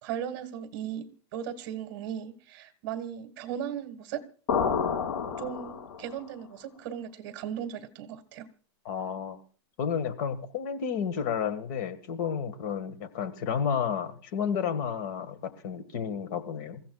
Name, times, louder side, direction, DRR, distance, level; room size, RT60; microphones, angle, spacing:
voice 1, 0.0-4.2 5.4-8.5, right 9 dB, 45° right, 1.6 m, -37 dB
sound 1, 4.5-6.2, left 6 dB, 80° left, 5.8 m, -29 dB
voice 2, 8.8-9.4 9.8-16.8, left 7 dB, 40° left, 1.7 m, -31 dB
28.0 x 15.5 x 2.3 m
supercardioid pair, 170°, 15 cm